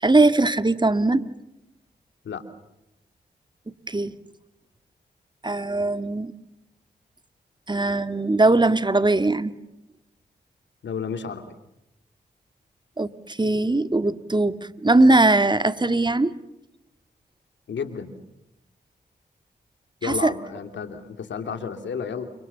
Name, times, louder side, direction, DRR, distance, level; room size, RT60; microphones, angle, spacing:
voice 1, 0.0-1.3 3.9-4.1 5.4-6.3 7.7-9.5 13.0-14.6 14.8-16.3 20.0-20.3, right 2 dB, 25° right, 11 dB, 2.0 m, -20 dB
voice 2, 10.8-11.4 17.7-18.2 20.0-22.3, left 6 dB, 85° left, 8 dB, 3.0 m, -32 dB
30.0 x 25.5 x 7.0 m, 0.88 s
cardioid pair, 40°, 19 cm